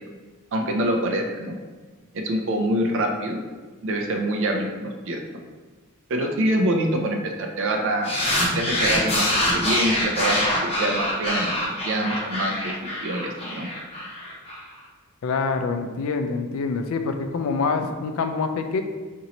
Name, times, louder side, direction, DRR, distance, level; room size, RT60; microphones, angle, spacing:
voice 1, 0.5-1.6 2.1-3.4 3.8-5.2 6.1-8.2 8.5-13.7, right 1 dB, 60° right, 2 dB, 0.5 m, -25 dB
sound 1, 8.0-14.6, left 1 dB, 30° left, 0.7 m, -25 dB
voice 2, 15.2-18.8, left 4 dB, 65° left, 6 dB, 0.3 m, -25 dB
4.1 x 2.6 x 2.9 m, 1.3 s
head